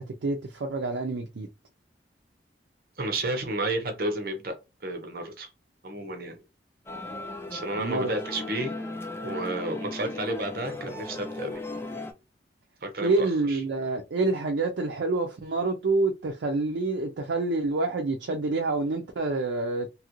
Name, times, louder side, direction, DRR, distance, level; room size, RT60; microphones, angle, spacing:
voice 1, 0.0-1.5 7.8-8.1 13.0-19.9, right 3 dB, 85° right, 0.5 m, -27 dB
voice 2, 3.0-4.6 4.8-5.5 5.8-6.4 7.5-8.8 9.2-11.6 12.8-13.6, right 2 dB, 55° right, 0.8 m, -31 dB
sound 1, 6.9-12.1, left 2 dB, 15° left, 0.4 m, -37 dB
3.0 x 2.4 x 2.9 m
head